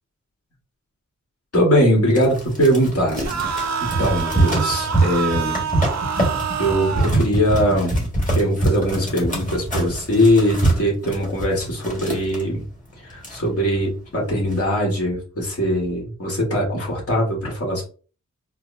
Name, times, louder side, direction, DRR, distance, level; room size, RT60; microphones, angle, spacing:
voice 1, 1.5-3.4 3.8-5.6 6.6-12.6 13.0-17.8, equal, 50° left, -2 dB, 1.9 m, -21 dB
sound 1, 2.2-12.4 12.9-13.0 13.1-13.8 14.3-14.6, right 2 dB, 25° left, 1.8 m, -24 dB
sound 2, 3.2-7.2, right 6 dB, 60° right, 0.6 m, -26 dB
4.5 x 2.3 x 2.7 m, 0.37 s
wide cardioid pair, 60°, 30 cm